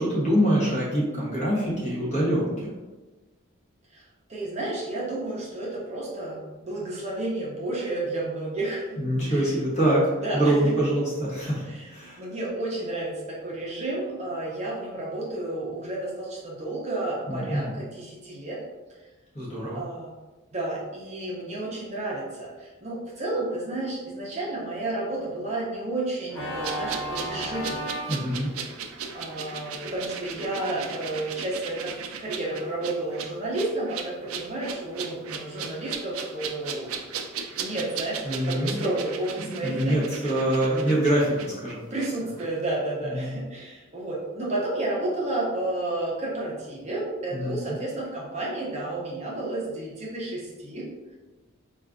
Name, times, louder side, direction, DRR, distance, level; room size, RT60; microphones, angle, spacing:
voice 1, 0.0-2.7 9.0-12.2 17.3-17.7 19.3-19.8 28.1-28.5 38.2-38.8 39.4-41.9 43.0-43.4 47.3-47.7, right 1 dB, 35° left, -6 dB, 1.1 m, -25 dB
voice 2, 4.3-9.0 9.3-9.6 10.1-10.7 11.7-11.9 12.2-18.6 19.7-20.1 20.5-27.9 28.3-28.4 29.1-31.9 32.2-37.1 37.6-40.4 41.9-50.9, right 2 dB, 30° right, -4 dB, 0.6 m, -31 dB
Organ, 26.3-31.1, right 1 dB, 60° left, 0.8 m, -36 dB
sound 1, 26.6-42.1 42.4-42.5, right 6 dB, 80° right, 0.3 m, -37 dB
4.2 x 2.3 x 2.5 m, 1.2 s
head